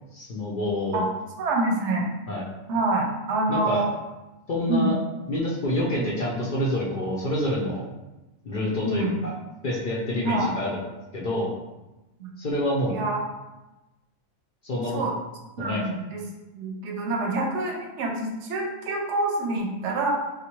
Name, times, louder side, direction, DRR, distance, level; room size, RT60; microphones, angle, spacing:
voice 1, 0.1-1.0 2.3-2.4 3.5-3.9 4.5-4.9 5.3-7.8 8.4-9.3 9.6-10.8 11.1-11.5 12.4-13.0 14.6-15.0 15.6-15.8, left 1 dB, 55° left, -5 dB, 0.6 m, -27 dB
voice 2, 1.4-2.0 2.7-3.8 4.7-5.0 6.0-6.1 8.8-9.2 10.2-10.5 12.2-12.3 12.9-13.2 14.9-15.1 15.6-16.2 16.5-20.1, right 2 dB, 70° right, 0 dB, 0.8 m, -26 dB
3.4 x 2.5 x 2.9 m, 1.0 s
omnidirectional pair, 1.3 m